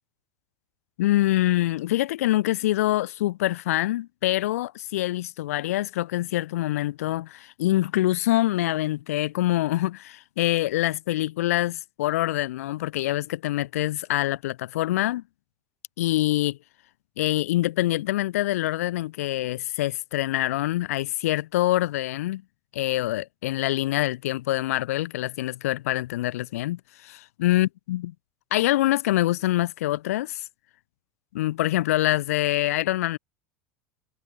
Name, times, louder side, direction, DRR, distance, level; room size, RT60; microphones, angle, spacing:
voice 1, 1.0-15.2 16.0-16.6 17.2-22.4 22.7-28.0 28.5-30.4 31.3-33.2, left 15 dB, 80° left, 0.7 m, -25 dB
hypercardioid pair, 95°, 8 cm